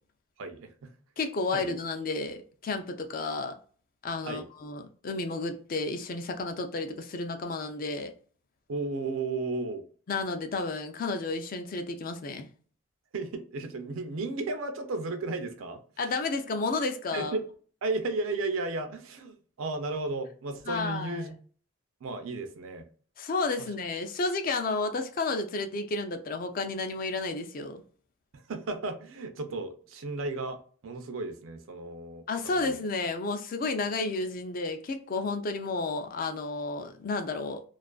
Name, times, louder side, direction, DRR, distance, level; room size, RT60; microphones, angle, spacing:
voice 1, 0.4-0.7 1.5-1.7 4.2-4.5 8.7-9.8 13.1-15.8 17.1-17.5 17.8-21.4 22.0-22.8 28.3-32.8, right 3 dB, 75° right, 0.4 m, -34 dB
voice 2, 1.2-3.6 4.0-8.1 10.1-12.5 16.0-17.4 20.7-21.2 23.2-27.8 32.3-37.6, left 3 dB, 40° left, 0.3 m, -32 dB
2.4 x 2.4 x 2.2 m
head